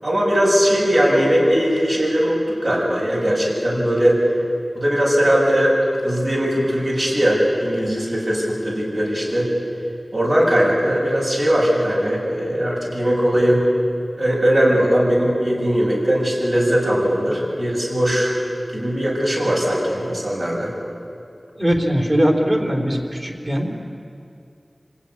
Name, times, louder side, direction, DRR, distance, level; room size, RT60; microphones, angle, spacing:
voice 1, 0.0-4.2 4.7-5.7 6.0-9.5 10.1-13.6 14.2-18.3 18.7-20.7, equal, 60° right, -4 dB, 7.4 m, -19 dB
voice 2, 21.6-23.7, equal, 35° right, 1 dB, 3.7 m, -20 dB
26.5 x 16.0 x 9.8 m, 2.5 s
wide cardioid pair, 65°, 0 cm